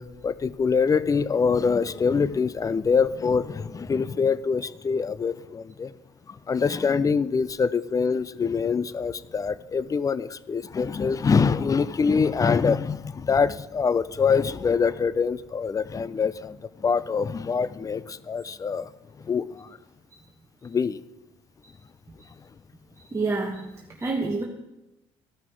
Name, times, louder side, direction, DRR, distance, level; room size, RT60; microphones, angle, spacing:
voice 1, 0.0-5.9 6.3-18.9 19.3-19.7 20.6-21.0, left 5 dB, 25° left, 17 dB, 0.5 m, -24 dB
voice 2, 23.0-24.4, right 3 dB, 20° right, 0 dB, 1.3 m, -29 dB
14.0 x 5.9 x 4.8 m, 0.95 s
hypercardioid pair, 65°, 13 cm